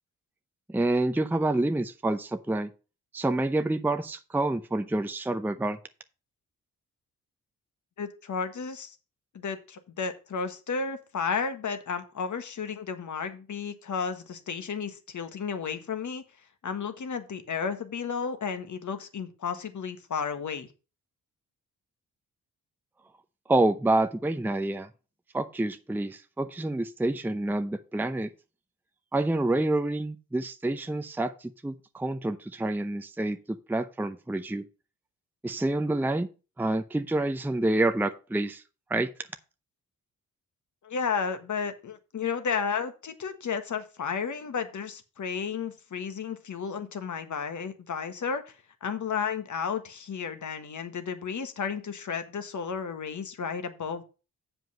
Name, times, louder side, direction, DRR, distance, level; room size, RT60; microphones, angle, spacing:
voice 1, 0.7-2.7 3.1-5.8 23.5-24.9 25.3-28.3 29.1-34.6 35.4-36.3 36.6-38.6 38.9-39.1, right 2 dB, 5° right, 9 dB, 0.6 m, -28 dB
voice 2, 8.0-9.0 9.3-16.2 16.6-20.7 40.8-48.4 48.8-54.0, left 6 dB, 55° left, 9 dB, 1.4 m, -33 dB
7.6 x 5.1 x 6.1 m, 0.33 s
cardioid pair, 60°, 36 cm